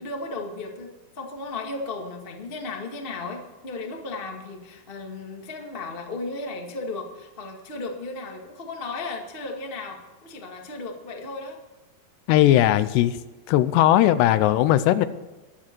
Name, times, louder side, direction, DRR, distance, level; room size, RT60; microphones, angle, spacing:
voice 1, 0.0-11.6, left 3 dB, 70° left, 1 dB, 0.5 m, -35 dB
voice 2, 12.3-13.2 13.5-15.1, left 13 dB, 90° left, 14 dB, 2.8 m, -18 dB
22.0 x 7.5 x 4.6 m, 1.2 s
omnidirectional pair, 4.8 m